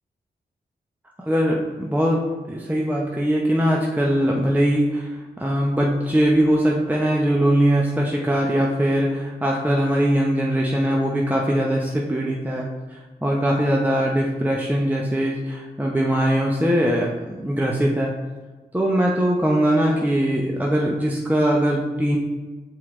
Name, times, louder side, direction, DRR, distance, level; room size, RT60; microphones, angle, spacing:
voice 1, 1.2-18.1 18.7-22.2, equal, 10° right, -2 dB, 0.8 m, -21 dB
5.9 x 4.6 x 3.7 m, 1.3 s
cardioid pair, 45°, 18 cm